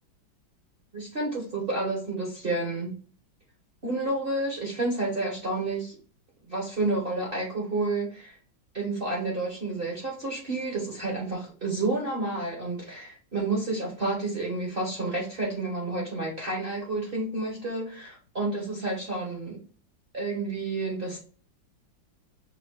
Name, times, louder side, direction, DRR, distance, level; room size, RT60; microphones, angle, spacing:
voice 1, 0.9-2.9 3.8-6.0 6.5-8.4 8.7-19.6 20.1-21.2, right 2 dB, 35° right, -2 dB, 0.9 m, -30 dB
5.4 x 2.4 x 3.6 m, 0.41 s
omnidirectional pair, 2.1 m